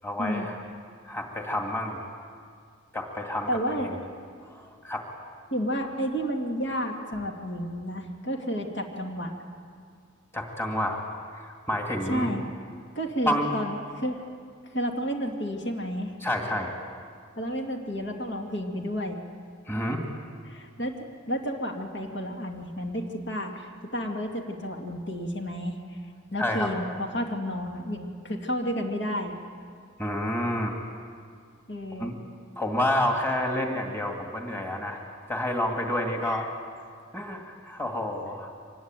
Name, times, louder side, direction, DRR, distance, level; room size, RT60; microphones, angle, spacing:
voice 1, 0.0-0.6 1.0-2.0 2.9-4.0 4.4-5.1 10.3-11.0 11.3-12.4 13.3-13.5 16.2-16.7 19.7-20.0 26.4-26.7 30.0-30.7 32.0-32.2 32.6-35.0 35.3-36.5 37.1-38.5, left 1 dB, 10° left, 1 dB, 2.3 m, -29 dB
voice 2, 3.5-4.0 5.5-9.3 12.1-12.4 13.0-14.2 14.7-16.2 17.4-19.2 20.5-20.9 21.3-26.0 26.3-29.4 31.7-32.1 36.2-36.4, equal, 55° left, 1 dB, 2.3 m, -31 dB
25.0 x 20.5 x 9.1 m, 2.1 s
head